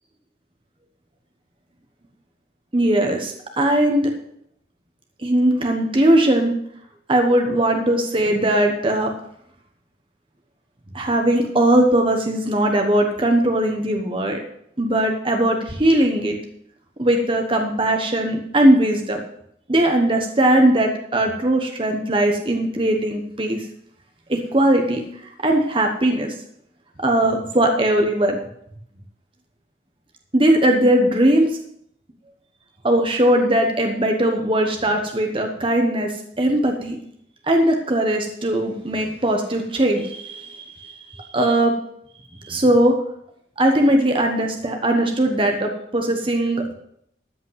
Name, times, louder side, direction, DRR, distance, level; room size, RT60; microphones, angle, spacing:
voice 1, 2.7-4.1 5.2-6.5 7.1-9.1 10.9-14.4 14.8-16.4 17.0-19.2 19.7-23.7 24.3-25.0 25.4-26.3 27.0-28.4 30.3-31.6 32.8-37.0 37.4-41.7 42.4-43.0 43.6-46.7, right 1 dB, 30° right, 3 dB, 1.1 m, -19 dB
13.5 x 5.3 x 8.0 m, 0.72 s
head